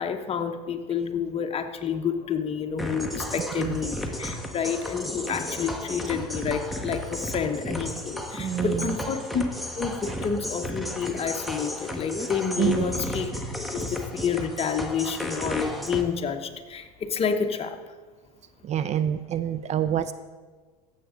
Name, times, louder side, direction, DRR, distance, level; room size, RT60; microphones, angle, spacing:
voice 1, 0.0-9.4 9.7-13.3 13.7-17.8, left 6 dB, 30° left, 6 dB, 1.0 m, -29 dB
sound 1, 2.8-16.0, equal, ahead, 1.1 m, -33 dB
voice 2, 3.4-3.8 4.4-4.5 8.4-9.0 10.1-10.2 12.6-13.0 18.6-20.1, right 10 dB, 35° right, 14 dB, 0.4 m, -27 dB
15.5 x 7.3 x 3.8 m, 1.4 s
hypercardioid pair, 95°, 20 cm